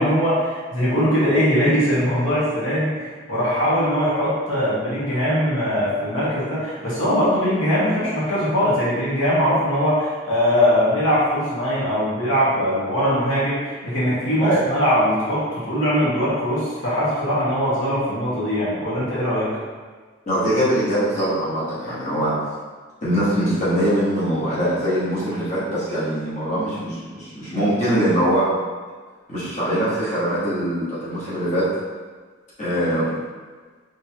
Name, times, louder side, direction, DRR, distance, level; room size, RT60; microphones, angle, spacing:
voice 1, 0.0-19.5, equal, 85° left, -9 dB, 1.5 m, -21 dB
voice 2, 20.2-22.3 23.0-28.5 29.3-31.7 32.6-33.1, equal, 35° left, -11 dB, 1.5 m, -22 dB
4.3 x 3.4 x 2.9 m, 1.5 s
head